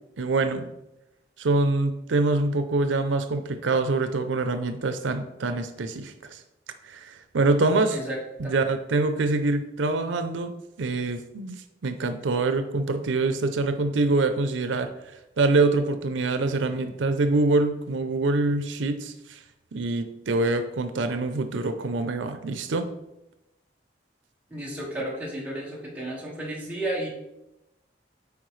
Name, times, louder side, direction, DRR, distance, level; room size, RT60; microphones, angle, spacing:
voice 1, 0.2-0.7 1.4-6.4 6.8-8.0 8.4-11.6 11.8-14.9 15.4-19.4 19.7-22.9, right 3 dB, 90° right, 9 dB, 0.5 m, -25 dB
voice 2, 7.9-8.6 24.5-27.1, right 1 dB, 10° right, -5 dB, 1.5 m, -33 dB
8.5 x 4.7 x 3.2 m, 0.91 s
head